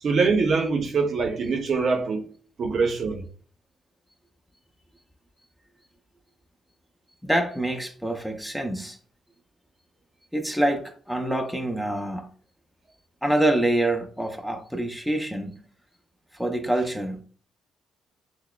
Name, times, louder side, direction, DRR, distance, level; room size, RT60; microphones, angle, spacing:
voice 1, 0.0-2.3 2.6-3.3, right 4 dB, 55° right, 0.7 m, -23 dB
voice 2, 7.2-9.0 10.3-12.3 13.2-15.6 16.3-17.2, right 1 dB, ahead, 0.5 m, -26 dB
5.8 x 2.1 x 2.2 m
cardioid pair, 90°, 0 cm